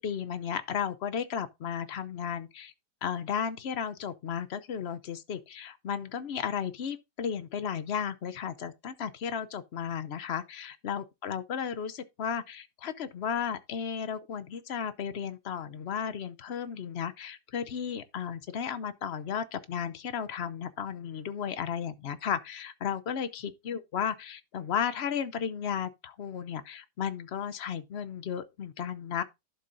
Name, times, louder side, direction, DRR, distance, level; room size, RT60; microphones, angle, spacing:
voice 1, 0.0-2.7 3.0-29.2, left 8 dB, 60° left, 0.7 m, -34 dB
11.5 x 7.1 x 2.6 m
omnidirectional pair, 1.9 m